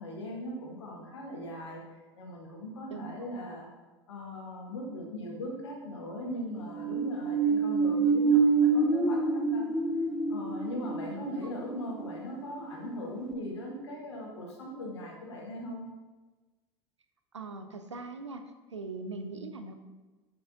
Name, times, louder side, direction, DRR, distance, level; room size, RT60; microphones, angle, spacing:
voice 1, 0.0-3.7 4.1-9.7 10.3-15.9, left 1 dB, 75° left, -1 dB, 1.5 m, -39 dB
sound 1, 6.6-12.9 13.3-13.4, right 4 dB, 5° left, 0.6 m, -27 dB
voice 2, 17.3-18.4 18.7-19.8, right 3 dB, 85° right, 7 dB, 0.6 m, -40 dB
7.0 x 6.6 x 2.6 m, 1.2 s
figure-of-eight pair, 70°, 15 cm